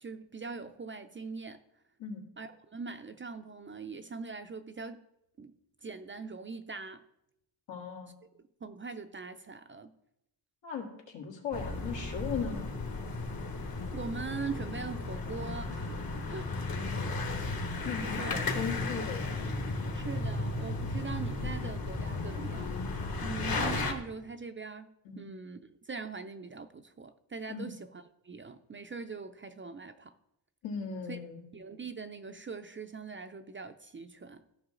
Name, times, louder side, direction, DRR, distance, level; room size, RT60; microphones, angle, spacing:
voice 1, 0.0-1.6 2.4-5.0 5.4-5.6 5.8-7.0 8.6-9.9 13.9-16.5 17.7-18.4 19.9-22.7 23.2-30.1 31.1-31.2 31.5-34.4, right 4 dB, 30° right, 0.4 m, -42 dB
voice 2, 7.7-8.1 10.6-12.7 16.5-17.2 17.8-19.5 25.0-25.3 27.5-27.7 30.6-31.4, left 6 dB, 80° left, 2.2 m, -38 dB
sound 1, 11.5-23.9, left 3 dB, 50° left, 1.5 m, -34 dB
14.5 x 5.6 x 3.8 m
wide cardioid pair, 125°, 45 cm